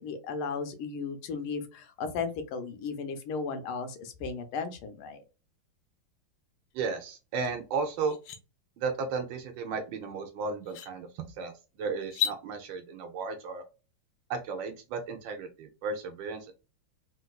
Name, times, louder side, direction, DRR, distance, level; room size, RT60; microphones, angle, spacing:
voice 1, 0.0-5.2, left 5 dB, 85° left, 8 dB, 1.6 m, -35 dB
voice 2, 6.7-8.2 8.8-13.6 14.3-16.5, right 4 dB, 70° right, 6 dB, 1.3 m, -34 dB
sound 1, 7.4-7.5 8.0-8.4 10.0-10.1 10.6-10.9 12.0-12.4, left 9 dB, 70° left, 1.2 m, -32 dB
3.9 x 2.5 x 2.2 m, 0.31 s
omnidirectional pair, 2.3 m